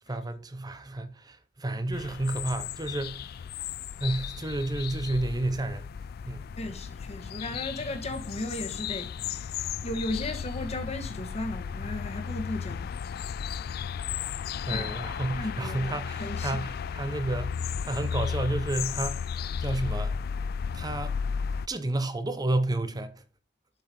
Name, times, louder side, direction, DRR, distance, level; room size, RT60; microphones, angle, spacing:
voice 1, 0.1-3.2 4.0-5.9 6.3-6.5 14.7-19.2 19.6-20.2 20.7-21.2 21.7-23.2, right 2 dB, 20° right, 0.8 m, -31 dB
sound 1, 1.9-21.7, left 7 dB, 55° left, 0.3 m, -34 dB
voice 2, 6.6-12.9 14.7-14.9 15.3-16.6, left 1 dB, 35° left, 1.6 m, -36 dB
7.7 x 5.5 x 5.3 m
head